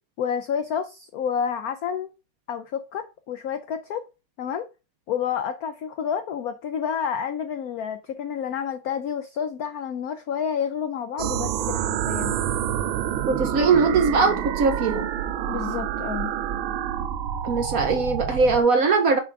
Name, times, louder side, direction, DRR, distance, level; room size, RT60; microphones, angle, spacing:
voice 1, 0.2-2.1 2.5-4.0 4.4-4.7 5.1-12.4 15.5-16.3, left 7 dB, 85° left, 0.8 m, -29 dB
sound 1, 11.2-18.6, right 10 dB, 85° right, 1.4 m, -28 dB
voice 2, 13.3-15.1 17.4-19.2, right 4 dB, 55° right, 1.0 m, -21 dB
6.9 x 3.5 x 4.6 m
omnidirectional pair, 2.2 m